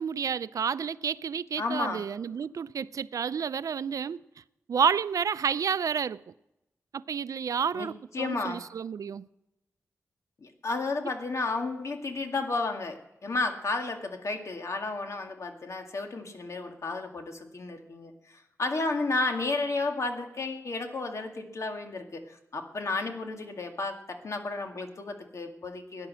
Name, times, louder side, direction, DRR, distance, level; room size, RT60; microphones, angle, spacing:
voice 1, 0.0-4.2 4.7-6.2 6.9-9.3, right 7 dB, 85° right, 0.5 m, -30 dB
voice 2, 1.6-2.0 7.7-7.9 8.1-8.6 10.4-26.1, left 3 dB, 60° left, 2.0 m, -32 dB
17.5 x 10.5 x 7.6 m
wide cardioid pair, 120°, 6 cm